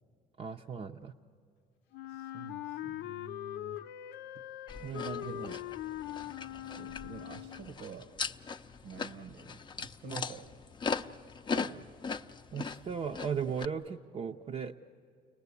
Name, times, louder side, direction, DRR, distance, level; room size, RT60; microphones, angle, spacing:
voice 1, 0.4-1.1 4.8-5.4 10.1-10.2 12.5-14.8, right 6 dB, 35° right, 2 dB, 0.6 m, -37 dB
Wind instrument woodwind instrument, 1.9-7.7, left 13 dB, 85° left, 0.5 m, -41 dB
voice 2, 2.1-3.8 5.2-5.7 6.6-8.1 8.8-10.6 11.5-11.9, right 5 dB, 85° right, 8 dB, 1.2 m, -48 dB
sound 1, 4.7-13.7, left 5 dB, 25° left, 0.5 m, -40 dB
30.0 x 19.0 x 8.3 m, 2.2 s
cardioid pair, 110°, 17 cm